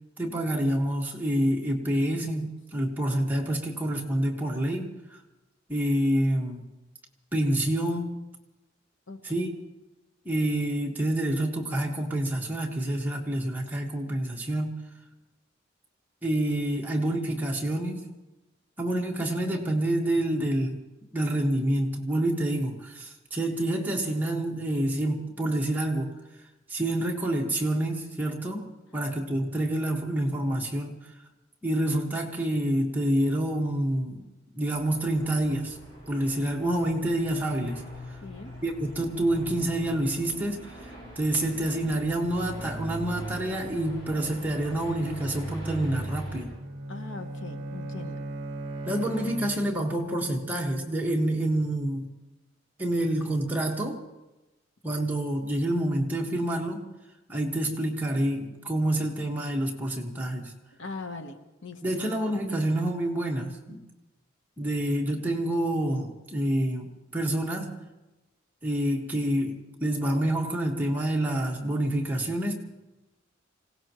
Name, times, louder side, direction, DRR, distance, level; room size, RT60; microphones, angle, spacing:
voice 1, 0.2-5.2 5.7-6.6 7.3-8.2 9.2-9.5 10.2-14.8 16.2-18.1 18.8-20.9 21.1-26.1 26.7-31.1 31.6-34.2 34.5-35.8 36.1-37.8 38.6-40.9 41.1-46.6 48.8-52.1 52.8-54.0 54.8-56.9 57.3-60.5 61.8-63.8 64.6-67.7 68.6-72.5, right 1 dB, 10° right, -1 dB, 1.6 m, -27 dB
voice 2, 2.2-2.6 9.1-9.5 38.2-38.5 46.9-48.2 60.8-61.4 61.6-62.0, left 3 dB, 70° left, 6 dB, 1.2 m, -41 dB
sound 1, 34.7-46.5, right 1 dB, 25° left, 6.1 m, -41 dB
Bowed string instrument, 46.4-50.1, right 1 dB, 40° right, 1.0 m, -37 dB
25.5 x 17.5 x 3.1 m, 1.1 s
head